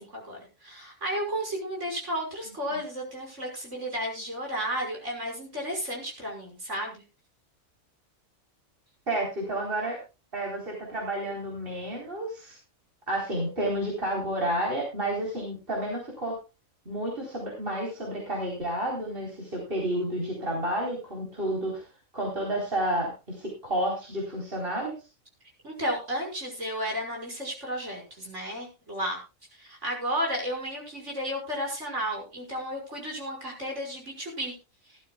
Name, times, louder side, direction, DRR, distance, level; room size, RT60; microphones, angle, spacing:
voice 1, 0.0-7.0 25.6-29.2 29.6-34.6, equal, 55° right, 0 dB, 6.2 m, -33 dB
voice 2, 9.1-10.0 10.3-12.6 13.1-16.3 16.9-21.9 22.1-24.9, right 1 dB, 40° right, -2 dB, 4.4 m, -30 dB
19.0 x 12.5 x 2.3 m, 0.29 s
omnidirectional pair, 1.4 m